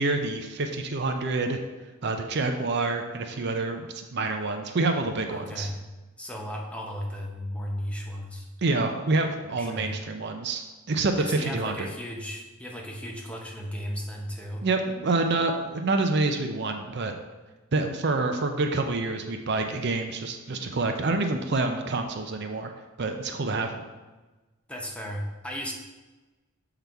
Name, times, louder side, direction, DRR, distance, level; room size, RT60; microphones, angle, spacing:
voice 1, 0.0-1.6 2.0-5.7 8.6-11.9 14.6-17.2 17.7-22.7 23.0-23.8, right 3 dB, 55° right, 5 dB, 0.5 m, -27 dB
voice 2, 5.3-5.8 6.2-8.5 9.6-10.0 11.2-14.6 24.7-25.7, equal, 5° left, -1 dB, 0.7 m, -35 dB
6.8 x 3.9 x 4.5 m, 1.2 s
head